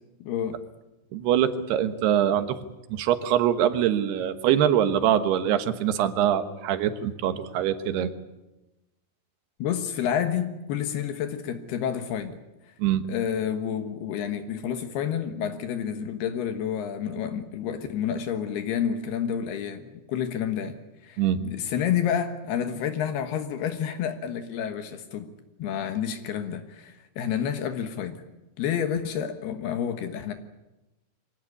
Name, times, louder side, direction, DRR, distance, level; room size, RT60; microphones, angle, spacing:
voice 1, 0.2-0.6 9.6-12.4 12.7-12.8 13.1-20.8 21.0-25.3 25.6-28.2 28.6-30.3, left 8 dB, 75° left, 8 dB, 3.3 m, -29 dB
voice 2, 1.1-2.6 2.9-8.1 12.8-13.0 21.2-21.4, right 10 dB, 75° right, 10 dB, 3.2 m, -23 dB
24.0 x 17.5 x 9.8 m, 0.99 s
omnidirectional pair, 4.9 m